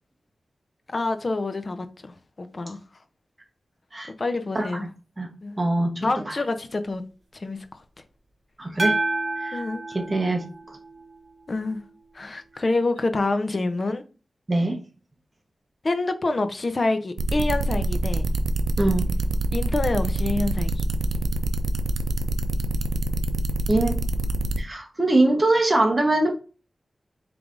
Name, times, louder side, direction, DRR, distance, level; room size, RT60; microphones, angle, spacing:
voice 1, 0.9-2.8 4.2-4.8 5.4-5.6 6.0-7.0 7.3-7.6 9.5-9.8 11.5-11.8 12.1-14.0 15.8-18.3 19.5-20.8, left 2 dB, 45° left, 0.6 m, -27 dB
voice 2, 5.6-6.4 8.6-8.9 9.4-10.4 14.5-14.8 18.8-19.1 23.7-24.0 24.6-26.3, right 2 dB, 30° right, 1.1 m, -23 dB
sound 1, 8.8-11.2, right 2 dB, 50° right, 1.2 m, -29 dB
sound 2, 17.2-24.6, right 2 dB, 75° right, 0.5 m, -25 dB
4.7 x 3.4 x 2.5 m
wide cardioid pair, 80°, 0 cm